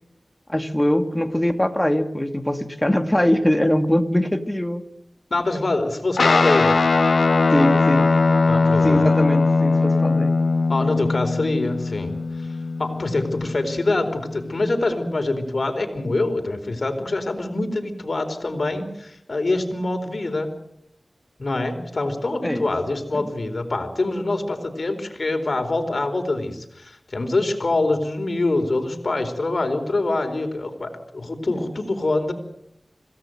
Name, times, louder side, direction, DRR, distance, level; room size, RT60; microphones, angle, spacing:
voice 1, 0.5-4.8 7.5-8.1 8.8-10.4 22.4-22.7 23.1-23.3 31.5-31.6, left 1 dB, 15° left, 7 dB, 2.2 m, -22 dB
voice 2, 5.3-6.8 8.5-9.1 10.7-12.2 12.8-20.5 21.4-32.3, left 2 dB, 65° left, 6 dB, 4.2 m, -25 dB
Guitar, 6.2-14.9, left 3 dB, 80° left, 0.9 m, -20 dB
27.0 x 17.5 x 7.9 m, 0.78 s
wide cardioid pair, 50°, 0 cm